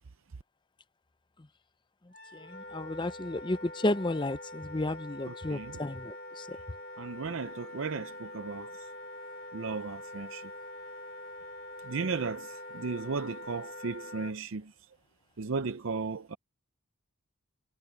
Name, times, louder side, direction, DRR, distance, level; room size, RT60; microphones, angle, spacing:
Wind instrument woodwind instrument, 2.1-14.3, left 1 dB, 40° left, 2.2 m, -44 dB
voice 1, 2.5-6.1, left 2 dB, 20° left, 0.6 m, -32 dB
voice 2, 5.2-5.8 7.0-8.9 9.5-10.5 11.8-14.7 15.4-16.4, right 4 dB, 60° right, 0.6 m, -35 dB
head